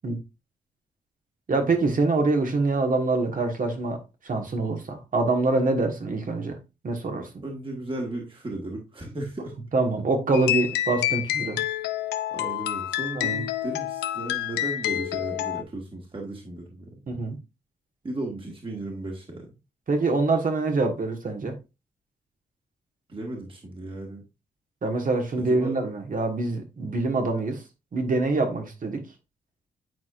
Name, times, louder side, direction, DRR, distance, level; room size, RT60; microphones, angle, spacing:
voice 1, 1.5-4.0 4.2-6.6 6.8-7.3 9.7-11.6 13.2-13.4 17.1-17.4 19.9-21.5 24.8-27.6 27.9-29.0, right 3 dB, 50° right, 1.6 m, -25 dB
voice 2, 7.4-9.5 12.3-17.1 18.0-19.5 23.1-24.2 25.4-25.8, right 2 dB, 30° right, 1.9 m, -35 dB
sound 1, 10.3-15.6, left 13 dB, 80° left, 0.5 m, -28 dB
9.4 x 4.3 x 2.5 m
supercardioid pair, 45°, 18 cm